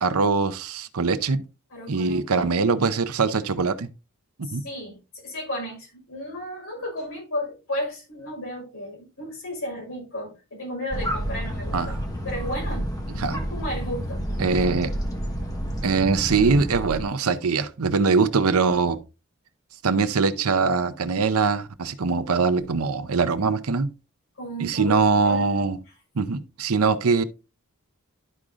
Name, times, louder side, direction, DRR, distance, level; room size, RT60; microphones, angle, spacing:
voice 1, 0.0-1.4 1.9-3.9 4.4-4.6 11.7-12.0 13.2-13.4 14.4-14.9 15.8-19.0 19.8-23.9 24.6-25.8 26.2-27.2, right 4 dB, 85° right, 0.7 m, -22 dB
voice 2, 1.7-2.5 4.4-5.0 5.2-12.0 12.2-12.9 13.3-14.2 24.4-25.0 25.2-25.5, left 1 dB, 65° left, 4.8 m, -34 dB
sound 1, 10.9-17.0, equal, 15° left, 1.2 m, -30 dB
12.0 x 4.9 x 2.5 m
head